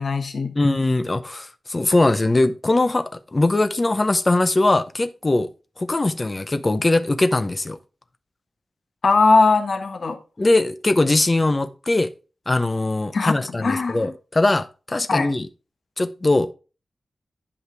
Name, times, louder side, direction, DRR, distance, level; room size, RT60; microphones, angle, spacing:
voice 1, 0.0-0.5 9.0-10.2 13.1-14.1 15.1-15.3, left 3 dB, 50° left, 1.4 m, -20 dB
voice 2, 0.6-5.5 5.8-7.8 10.4-12.1 12.5-15.5 16.0-16.5, left 2 dB, 20° left, 0.7 m, -21 dB
11.5 x 5.0 x 3.5 m
wide cardioid pair, 180°, 0 cm